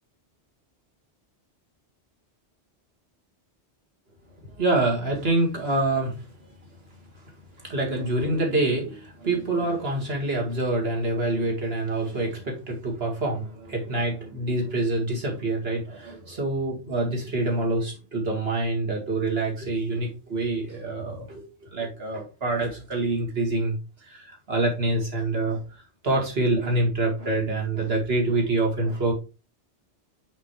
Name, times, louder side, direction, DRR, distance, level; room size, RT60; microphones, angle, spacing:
voice 1, 4.4-6.3 7.6-23.8 24.0-25.6 26.0-29.1, right 2 dB, 65° right, 0 dB, 2.2 m, -26 dB
5.9 x 5.9 x 3.2 m, 0.30 s
omnidirectional pair, 1.1 m